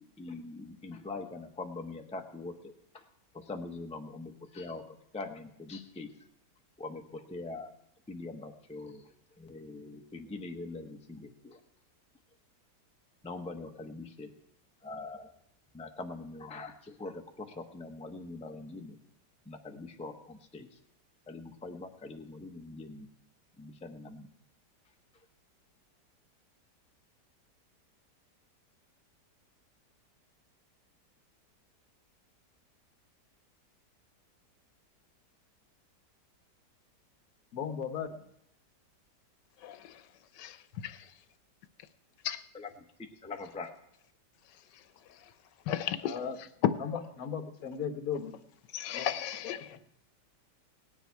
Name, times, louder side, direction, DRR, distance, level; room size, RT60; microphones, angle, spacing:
voice 1, 0.0-3.1 3.3-6.1 6.8-7.7 8.1-11.6 13.2-14.3 14.8-15.3 15.7-19.0 19.4-20.8 21.3-23.1 23.6-24.3 42.5-43.7, left 3 dB, 5° left, 0.6 m, -43 dB
voice 2, 37.5-38.2 46.0-46.4 46.8-48.4 48.9-49.1 49.7-49.8, left 7 dB, 60° left, 1.3 m, -36 dB
voice 3, 39.6-40.0 40.4-41.0 42.2-42.4 45.7-46.2 46.6-46.7 48.7-49.7, left 10 dB, 85° left, 1.3 m, -33 dB
17.5 x 10.0 x 4.6 m
omnidirectional pair, 1.8 m